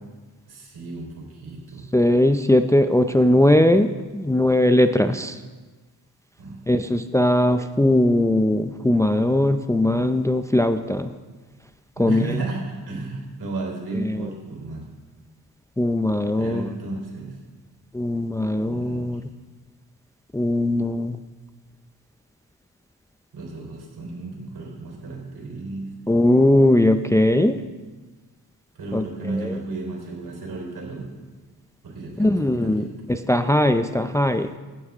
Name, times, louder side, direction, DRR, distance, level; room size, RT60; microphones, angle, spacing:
voice 1, 0.5-1.9 6.4-6.9 12.0-14.9 16.4-17.4 18.7-19.1 23.3-26.2 28.8-31.1 31.8-32.9, right 3 dB, 75° right, -1 dB, 3.9 m, -33 dB
voice 2, 1.9-5.3 6.7-11.1 12.0-12.4 14.0-14.3 15.8-16.7 17.9-19.2 20.3-21.2 26.1-27.6 28.9-29.0 29.4-29.5 32.2-32.8 33.1-34.5, left 1 dB, 10° left, 9 dB, 0.5 m, -19 dB
16.0 x 8.9 x 3.6 m, 1.3 s
cardioid pair, 60°, 39 cm